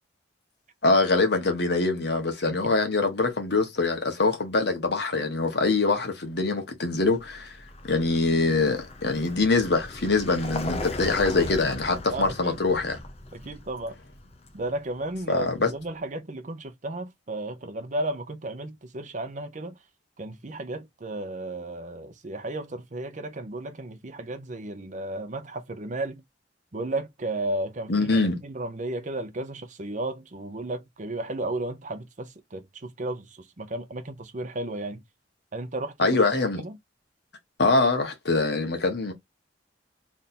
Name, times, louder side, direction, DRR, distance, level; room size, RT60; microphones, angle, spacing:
voice 1, 0.8-7.5 7.9-13.0 15.3-15.7 27.9-28.4 36.0-36.6 37.6-39.1, left 3 dB, 65° left, 1.3 m, -24 dB
Vehicle, 7.0-15.8, left 2 dB, 35° left, 0.7 m, -38 dB
voice 2, 12.1-12.6 13.3-13.9 14.5-19.8 20.2-26.2 26.7-28.1 28.4-35.0 35.5-36.2 36.6-36.8, right 2 dB, 45° right, 0.8 m, -34 dB
3.4 x 2.6 x 4.2 m
head